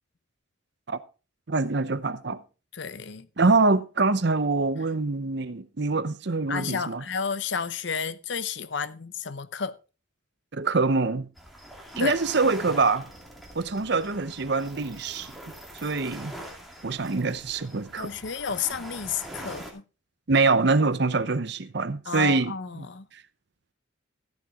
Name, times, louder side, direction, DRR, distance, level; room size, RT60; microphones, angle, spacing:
voice 1, 1.5-2.4 3.4-7.0 10.5-11.3 12.0-13.1 13.5-15.3 15.7-16.3 16.8-18.1 20.3-22.9 23.1-23.2, right 3 dB, 55° right, 0.7 m, -25 dB
voice 2, 2.7-3.3 6.5-9.8 12.0-12.1 18.0-19.8 22.1-23.1, left 6 dB, 60° left, 0.7 m, -31 dB
sound 1, 11.4-19.7, right 1 dB, ahead, 2.5 m, -43 dB
14.0 x 9.2 x 3.6 m
head